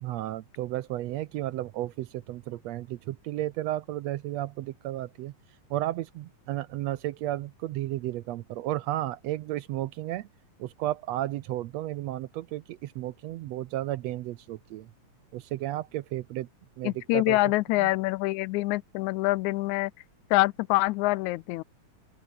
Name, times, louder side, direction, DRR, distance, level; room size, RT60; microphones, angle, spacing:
voice 1, 0.0-5.3 5.7-10.3 10.6-14.9 15.3-16.5 16.8-17.4 17.8-17.9, right 15 dB, 75° right, 1.7 m, -33 dB
voice 2, 16.8-19.9 20.3-21.6, left 20 dB, 85° left, 1.9 m, -25 dB
open air
omnidirectional pair, 3.4 m